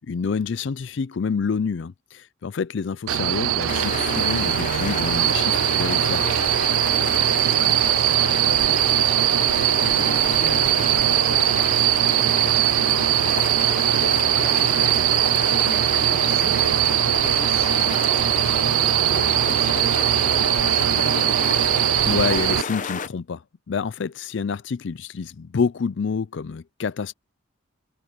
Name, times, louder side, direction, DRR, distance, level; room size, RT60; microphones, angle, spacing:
voice 1, 0.0-6.3 22.1-23.4 23.7-27.1, left 5 dB, 55° left, 0.4 m, -27 dB
sound 1, 3.1-22.6, right 13 dB, 80° right, 0.3 m, -20 dB
sound 2, 3.7-23.1, left 5 dB, 35° left, 0.8 m, -30 dB
voice 2, 7.1-21.4, left 3 dB, 85° left, 1.1 m, -39 dB
head